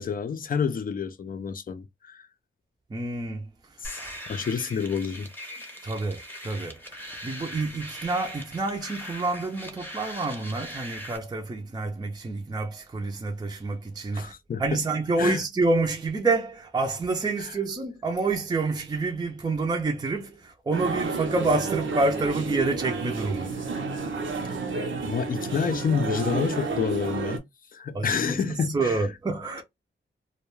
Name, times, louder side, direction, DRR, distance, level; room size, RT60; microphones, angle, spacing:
voice 1, 0.0-2.3 3.8-4.0 4.3-5.3 14.1-14.8 15.2-15.4 17.4-17.5 25.0-27.4 27.7-29.0, left 6 dB, 45° left, 0.5 m, -29 dB
voice 2, 2.9-3.5 3.9-4.1 5.8-14.3 14.6-23.6 27.9-29.6, right 3 dB, 20° right, 0.5 m, -28 dB
sound 1, 3.8-11.2, equal, 10° left, 0.8 m, -40 dB
sound 2, 20.7-27.4, right 3 dB, 80° right, 0.7 m, -30 dB
2.3 x 2.2 x 3.0 m
wide cardioid pair, 120°, 20 cm